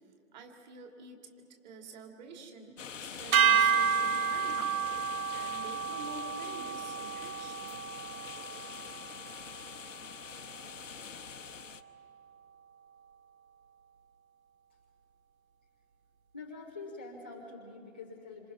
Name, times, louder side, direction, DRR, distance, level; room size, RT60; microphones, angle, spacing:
voice 1, 0.3-1.2 1.6-4.9 5.3-7.8, right 3 dB, 30° right, 3 dB, 2.8 m, -48 dB
sound 1, 2.8-11.8, left 7 dB, 65° left, 1.1 m, -45 dB
sound 2, 3.3-9.7, right 6 dB, 80° right, 0.9 m, -30 dB
voice 2, 16.3-18.5, left 3 dB, 10° left, -6 dB, 0.5 m, -45 dB
27.0 x 26.5 x 5.9 m, 2.6 s
hypercardioid pair, 150°, 41 cm